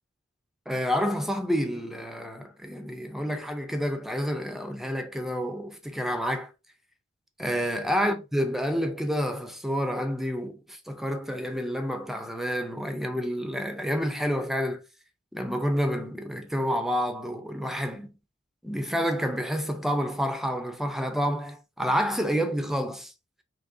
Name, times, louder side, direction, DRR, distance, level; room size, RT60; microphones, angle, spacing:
voice 1, 0.7-6.5 7.4-14.8 15.3-18.1 18.6-23.1, equal, ahead, 0.6 m, -29 dB
4.9 x 3.0 x 2.6 m
head